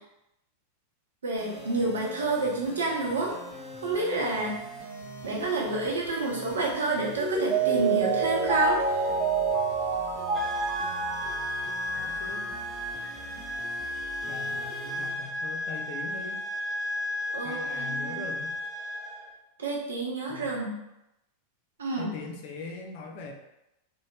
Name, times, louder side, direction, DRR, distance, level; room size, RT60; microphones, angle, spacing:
voice 1, 1.2-3.3 3.8-4.6 5.2-8.8 17.3-18.2 19.6-20.8 21.8-22.1, right 2 dB, 65° right, -2 dB, 0.7 m, -29 dB
sound 1, 1.4-15.1, right 1 dB, 15° left, 0.9 m, -44 dB
Mallet percussion, 7.2-12.7 13.0-13.1, right 4 dB, 20° right, 0.6 m, -28 dB
sound 2, 10.3-19.3, left 1 dB, 5° right, 1.3 m, -34 dB
voice 2, 12.0-12.5 14.3-16.4 17.4-18.6 20.3-20.6 22.0-23.3, left 4 dB, 45° left, 2 dB, 0.4 m, -41 dB
2.5 x 2.0 x 3.2 m, 0.89 s
figure-of-eight pair, 90°, 0 cm